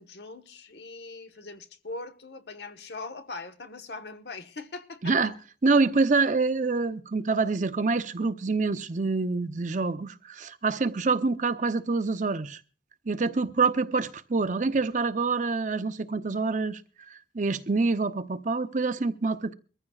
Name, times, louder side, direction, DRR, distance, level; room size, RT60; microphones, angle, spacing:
voice 1, 0.0-5.4, left 3 dB, 70° left, 1.1 m, -41 dB
voice 2, 5.6-12.6 13.1-16.8 17.1-19.5, right 4 dB, 45° right, 0.6 m, -26 dB
23.0 x 14.5 x 2.3 m
head